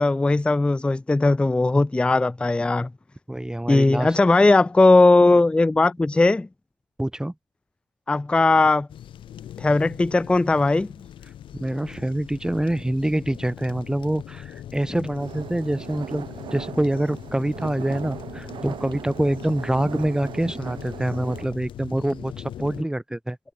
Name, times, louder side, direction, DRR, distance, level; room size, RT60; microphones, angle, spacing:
voice 1, 0.0-2.9 3.7-6.5 8.1-8.9 9.6-10.9, left 2 dB, 10° left, 0.3 m, -18 dB
voice 2, 3.3-4.2 7.0-7.3 11.5-23.4, right 1 dB, 10° right, 1.6 m, -26 dB
sound 1, 8.9-22.8, left 10 dB, 80° left, 0.6 m, -40 dB
sound 2, 15.2-21.5, right 10 dB, 70° right, 0.5 m, -39 dB
cardioid pair, 80°, 8 cm